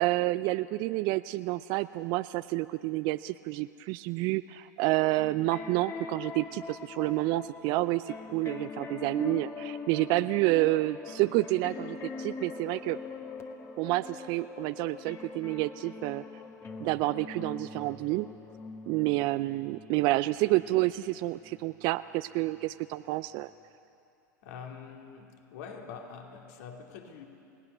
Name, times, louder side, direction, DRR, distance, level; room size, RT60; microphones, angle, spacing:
voice 1, 0.0-13.0 13.8-16.2 16.8-18.3 18.9-23.5, right 19 dB, 45° right, 13 dB, 0.5 m, -29 dB
sound 1, 5.1-21.8 22.5-22.6, left 4 dB, 25° left, 1.8 m, -43 dB
voice 2, 24.4-27.3, left 6 dB, 60° left, 2 dB, 2.6 m, -45 dB
30.0 x 17.5 x 6.8 m, 2.7 s
hypercardioid pair, 95°, 10 cm